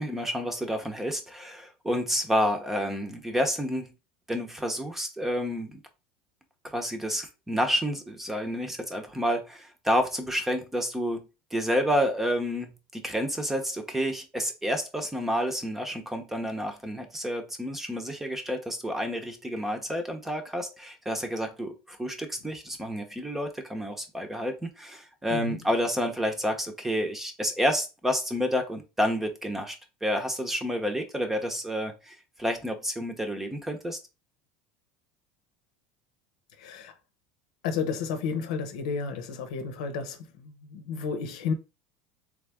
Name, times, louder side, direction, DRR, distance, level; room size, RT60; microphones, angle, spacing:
voice 1, 0.0-3.9 4.3-5.8 6.6-34.0, equal, 5° right, 0.8 m, -29 dB
voice 2, 36.6-36.9 37.6-41.5, left 5 dB, 85° left, 0.9 m, -32 dB
3.6 x 3.3 x 3.5 m
supercardioid pair, 140°, 4 cm